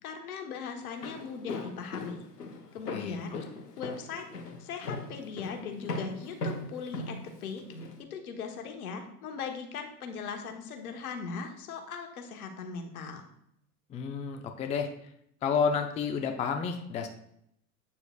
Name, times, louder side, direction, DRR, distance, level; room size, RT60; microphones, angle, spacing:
voice 1, 0.0-2.3 2.7-3.4 3.8-4.3 4.6-7.6 8.1-13.2, left 5 dB, 70° left, 4 dB, 1.3 m, -39 dB
Walk footsteps, 0.8-8.0, left 2 dB, 90° left, 0.9 m, -39 dB
voice 2, 2.9-3.4 13.9-14.9 15.4-17.1, left 6 dB, 15° left, 6 dB, 0.4 m, -30 dB
8.3 x 6.9 x 2.3 m, 0.73 s
figure-of-eight pair, 85°, 46 cm